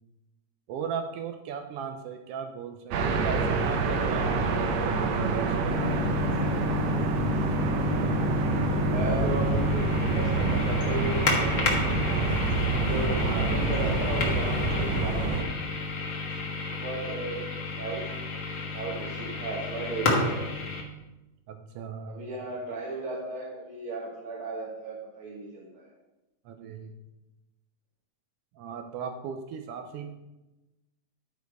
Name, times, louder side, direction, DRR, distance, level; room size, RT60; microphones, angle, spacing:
voice 1, 0.7-6.1 21.5-22.2 26.4-26.9 28.5-30.1, right 6 dB, 90° right, 5 dB, 1.3 m, -37 dB
sound 1, 2.9-15.4, right 4 dB, 70° right, 1.9 m, -27 dB
sound 2, 5.7-20.8, left 3 dB, 50° left, 1.5 m, -30 dB
voice 2, 8.7-12.2 12.7-15.6 16.7-17.4 17.8-18.1 18.7-20.4 22.1-25.9, right 3 dB, 55° right, -3 dB, 1.9 m, -35 dB
11.5 x 4.6 x 4.7 m, 1.0 s
omnidirectional pair, 3.4 m